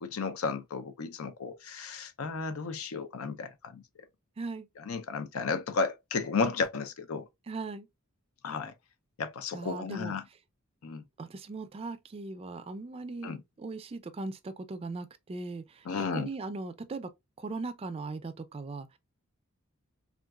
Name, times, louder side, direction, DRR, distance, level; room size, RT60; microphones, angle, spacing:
voice 1, 0.0-3.8 4.8-7.3 8.4-8.7 9.2-10.2 10.8-11.0 13.2-13.4 15.9-16.3, left 4 dB, 80° left, 0.5 m, -33 dB
voice 2, 4.4-4.7 7.5-7.9 9.5-10.2 11.2-17.1 17.4-19.0, right 3 dB, 30° right, 0.3 m, -39 dB
3.7 x 2.3 x 2.3 m
head